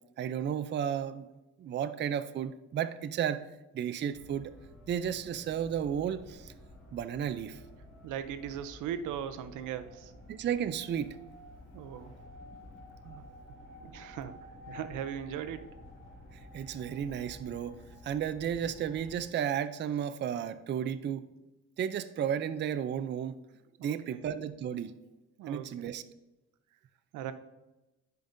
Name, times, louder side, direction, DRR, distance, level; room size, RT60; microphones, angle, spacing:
voice 1, 0.2-1.3 1.6-3.5 3.7-4.5 4.9-6.5 6.9-7.6 10.3-11.2 16.5-17.8 18.0-21.2 21.8-23.4 23.8-24.9 25.5-26.0, right 9 dB, 40° right, 12 dB, 0.4 m, -33 dB
sound 1, 4.1-19.2, left 1 dB, 40° left, 2.5 m, -51 dB
voice 2, 8.0-10.1 11.7-12.2 13.0-13.2 13.8-14.4 14.7-15.8 23.8-24.2 25.4-25.9 27.1-27.3, right 9 dB, 85° right, 12 dB, 0.6 m, -39 dB
10.5 x 5.2 x 2.6 m, 1.0 s
cardioid pair, 90°, 30 cm